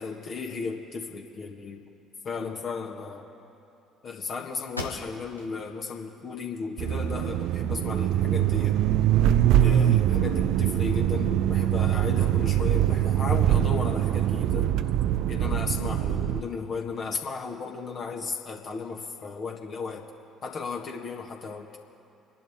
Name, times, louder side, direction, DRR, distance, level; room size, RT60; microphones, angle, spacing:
voice 1, 0.0-1.8 2.2-3.3 4.0-8.8 9.6-14.7 15.3-20.0 20.4-21.8, left 4 dB, 45° left, 0 dB, 1.8 m, -35 dB
sound 1, 4.7-5.5 6.0-6.1 6.6-7.5, left 2 dB, 90° left, 0.9 m, -40 dB
sound 2, 6.8-16.4, right 11 dB, 60° right, 0.5 m, -23 dB
26.5 x 11.5 x 3.6 m, 2.7 s
figure-of-eight pair, 50°, 0 cm